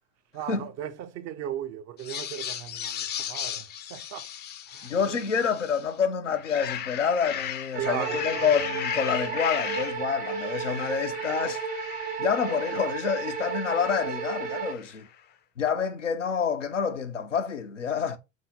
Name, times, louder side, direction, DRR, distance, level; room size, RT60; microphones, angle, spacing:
voice 1, 0.3-4.3 4.7-5.2 7.8-8.6, right 10 dB, 45° right, 0.6 m, -37 dB
sound 1, 2.0-5.9 6.3-15.0, left 10 dB, 30° left, 0.4 m, -37 dB
voice 2, 4.8-11.6 12.2-15.1 15.6-18.2, left 6 dB, 90° left, 0.5 m, -28 dB
sound 2, 7.7-14.7, right 6 dB, 65° right, 1.1 m, -33 dB
3.7 x 2.7 x 4.0 m
figure-of-eight pair, 65°, 36 cm